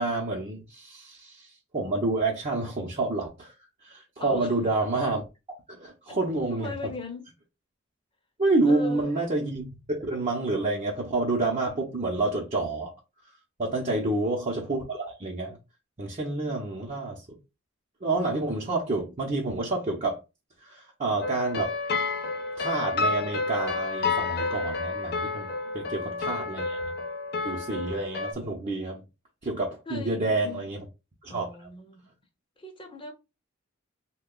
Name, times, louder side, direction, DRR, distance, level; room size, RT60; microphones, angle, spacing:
voice 1, 0.0-3.5 3.8-5.2 5.7-6.7 8.4-12.9 13.6-15.6 16.0-17.4 18.0-20.2 20.6-21.7 22.6-26.9 27.4-29.0 29.4-30.8 31.2-31.5, right 2 dB, 35° right, 0.9 m, -28 dB
voice 2, 4.2-4.5 6.1-6.2 6.5-7.2 8.7-9.2 13.8-14.2 16.4-16.8 25.7-26.4 29.9-30.7 31.3-32.1 32.6-33.1, left 3 dB, 25° left, 0.8 m, -40 dB
sound 1, 21.2-28.3, left 3 dB, 50° left, 0.5 m, -30 dB
3.3 x 2.3 x 3.8 m
head